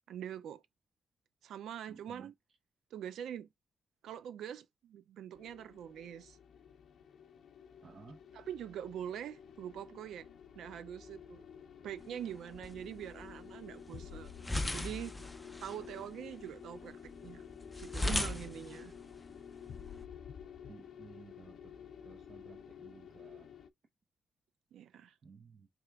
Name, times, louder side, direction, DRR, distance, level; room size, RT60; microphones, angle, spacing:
voice 1, 0.1-0.6 1.4-2.3 2.9-3.5 4.0-6.4 8.3-10.3 10.6-11.4 11.8-14.3 14.7-15.1 15.6-17.4 17.8-18.9 24.7-25.1, right 10 dB, 90° right, 0.4 m, -44 dB
voice 2, 1.9-2.3 7.8-8.2 20.7-21.7 22.0-23.5 25.2-25.7, right 4 dB, 55° right, 0.7 m, -55 dB
Breaking the Atmophere (The Wait), 5.3-23.7, left 8 dB, 70° left, 0.4 m, -52 dB
sound 1, 12.0-20.0, left 2 dB, 15° left, 0.5 m, -41 dB
3.5 x 2.9 x 3.3 m
cardioid pair, 80°, 0 cm